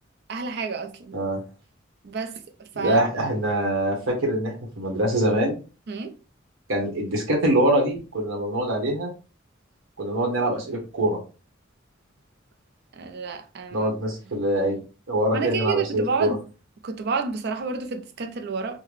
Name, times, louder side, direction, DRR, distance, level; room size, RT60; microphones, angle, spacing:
voice 1, 0.3-1.2 2.0-2.4 2.8-3.0 5.9-6.1 13.0-13.9 15.3-16.4 16.8-18.8, right 5 dB, 55° right, 0.5 m, -29 dB
voice 2, 2.8-5.6 6.7-9.1 10.0-11.2 13.7-14.8 15.1-16.3, right 1 dB, 85° right, 1.1 m, -24 dB
3.8 x 2.1 x 3.1 m
head